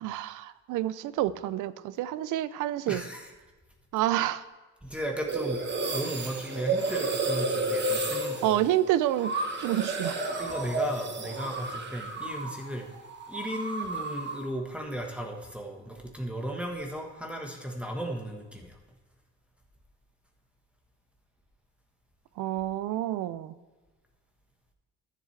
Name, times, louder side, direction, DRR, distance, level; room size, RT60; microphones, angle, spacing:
voice 1, 0.0-3.0 3.9-4.4 8.4-9.3 9.6-10.2 22.4-23.5, right 13 dB, 85° right, 16 dB, 0.5 m, -28 dB
voice 2, 2.9-3.3 4.0-4.1 4.8-5.6 5.9-8.6 10.4-12.9 13.3-18.8, right 1 dB, 5° right, 0 dB, 1.3 m, -35 dB
sound 1, 5.3-12.7 12.9-14.5, right 2 dB, 35° right, 1.2 m, -31 dB
13.0 x 7.5 x 3.3 m, 1.3 s
cardioid pair, 90°, 30 cm